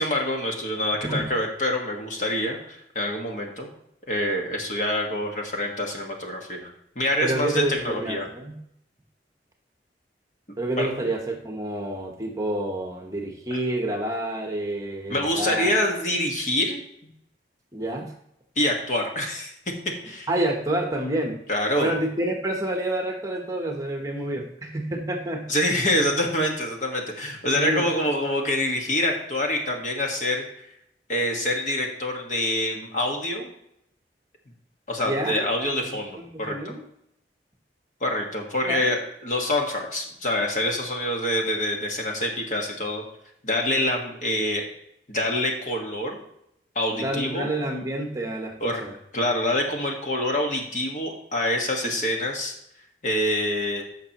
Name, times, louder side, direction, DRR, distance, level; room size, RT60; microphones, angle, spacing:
voice 1, 0.0-3.7 4.1-6.7 6.9-8.3 10.8-10.9 13.5-13.6 15.1-17.1 18.5-19.5 20.0-20.3 21.5-21.9 25.5-30.7 31.1-33.5 34.9-36.6 38.0-43.0 43.4-44.6 45.1-46.2 46.7-47.5 48.6-48.8 49.1-52.5 53.0-53.8, left 1 dB, 45° left, 1 dB, 1.6 m, -26 dB
voice 2, 1.0-1.3 7.2-8.6 10.6-15.7 17.7-18.1 20.3-21.4 21.8-25.5 27.5-27.9 35.0-35.5 35.8-36.8 38.7-38.9 46.9-48.9, right 1 dB, 20° right, 2 dB, 1.0 m, -28 dB
14.5 x 6.0 x 3.0 m, 0.77 s
head